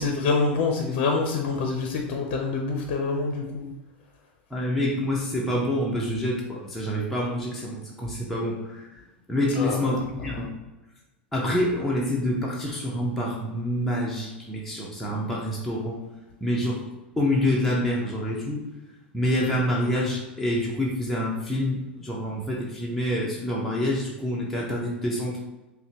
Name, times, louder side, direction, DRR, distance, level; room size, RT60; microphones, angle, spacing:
voice 1, 0.0-3.6 9.6-10.0, left 4 dB, 50° left, 2 dB, 0.6 m, -26 dB
voice 2, 4.5-8.9 9.3-10.5 11.3-16.0 16.4-16.8 17.2-18.7 19.1-25.4, left 1 dB, ahead, -5 dB, 0.7 m, -27 dB
5.3 x 2.2 x 2.8 m, 1.1 s
hypercardioid pair, 100°, 6 cm